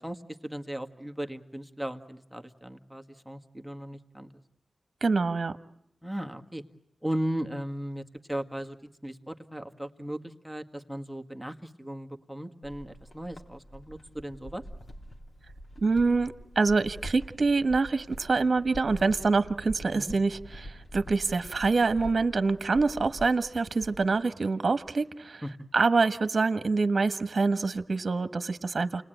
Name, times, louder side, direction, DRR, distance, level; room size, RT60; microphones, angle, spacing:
voice 1, 0.0-4.3 6.0-6.6 7.0-14.6 19.9-20.1 25.4-25.5, right 1 dB, ahead, 7 dB, 1.8 m, -37 dB
voice 2, 5.0-5.6 15.8-25.4 25.7-29.0, right 4 dB, 55° right, 11 dB, 1.3 m, -26 dB
sound 1, 12.6-24.2, equal, 55° left, 4.0 m, -45 dB
29.5 x 20.5 x 9.1 m, 0.80 s
cardioid pair, 60°, 0 cm